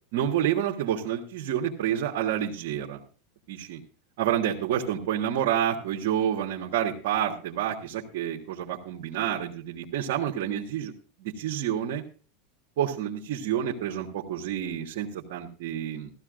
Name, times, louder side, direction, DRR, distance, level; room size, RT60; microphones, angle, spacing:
voice 1, 0.1-3.0 3.5-3.8 4.2-10.9 11.2-12.0 12.8-16.1, right 10 dB, 70° right, 0 dB, 1.5 m, -29 dB
15.0 x 13.5 x 2.5 m, 0.39 s
supercardioid pair, 120°, 0 cm